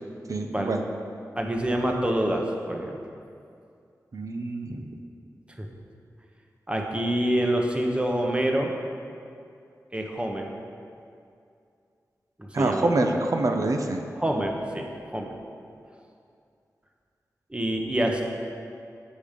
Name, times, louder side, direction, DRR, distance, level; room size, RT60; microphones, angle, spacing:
voice 1, 0.3-0.8 4.1-4.9 12.5-14.1, right 2 dB, 60° right, 4 dB, 0.6 m, -26 dB
voice 2, 1.4-3.0 5.6-5.7 6.7-8.7 9.9-10.5 12.4-12.9 14.2-14.9 15.1-15.3 17.5-18.2, right 1 dB, 15° right, 2 dB, 0.9 m, -26 dB
7.3 x 5.0 x 5.1 m, 2.4 s
wide cardioid pair, 75°, 6 cm